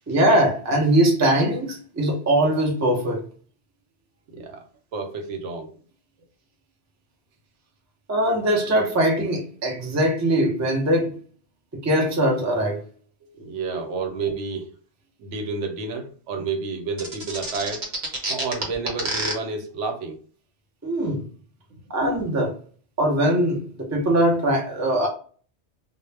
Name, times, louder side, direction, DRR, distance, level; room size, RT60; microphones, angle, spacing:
voice 1, 0.1-3.3 8.1-11.2 11.8-12.8 13.7-13.8 20.8-21.2 21.9-22.5 23.0-25.1, right 1 dB, 25° right, 0.4 m, -21 dB
voice 2, 4.3-4.6 4.9-5.7 13.2-14.7 15.2-17.9 18.3-20.2, right 4 dB, 85° right, 0.9 m, -30 dB
sound 1, 17.0-19.3, right 2 dB, 45° right, 0.8 m, -27 dB
2.1 x 2.0 x 3.2 m
omnidirectional pair, 1.2 m